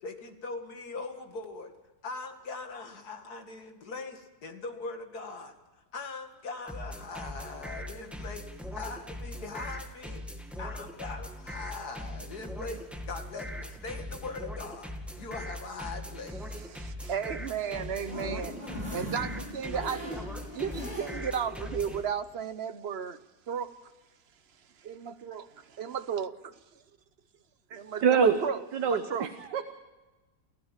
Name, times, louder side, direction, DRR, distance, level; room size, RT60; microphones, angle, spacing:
voice 1, 0.0-1.7 2.0-5.5 5.9-8.4 8.7-10.2 10.6-16.4, left 3 dB, 60° left, 2.6 m, -41 dB
sound 1, 6.7-22.0, left 1 dB, ahead, 2.2 m, -40 dB
voice 2, 16.7-18.5 18.9-20.2 20.5-23.2 23.5-23.7 24.8-25.5 25.8-26.5 27.7-28.6 29.1-29.3, right 7 dB, 50° right, 0.9 m, -34 dB
sound 2, 17.5-21.4 21.8-21.9 22.3-22.4, left 1 dB, 20° left, 7.8 m, -41 dB
voice 3, 28.0-28.4 28.7-29.6, right 6 dB, 75° right, 1.8 m, -25 dB
29.0 x 15.0 x 7.4 m
omnidirectional pair, 1.9 m